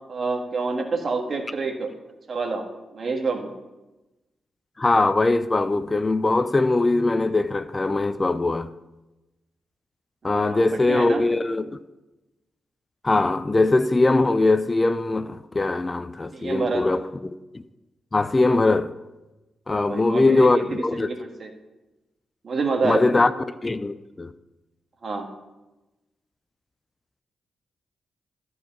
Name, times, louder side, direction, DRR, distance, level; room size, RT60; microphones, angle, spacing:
voice 1, 0.1-1.9 2.3-2.6 2.9-3.5 10.2-11.2 16.3-16.9 19.7-21.5 22.4-23.0 25.0-25.3, right 4 dB, 55° right, 1.6 m, -27 dB
voice 2, 4.8-8.7 10.2-11.8 13.0-17.6 18.1-18.9 19.7-21.1 22.8-23.3 23.6-24.3, left 2 dB, 30° left, 0.5 m, -21 dB
11.5 x 4.8 x 5.8 m
hypercardioid pair, 40°, 0 cm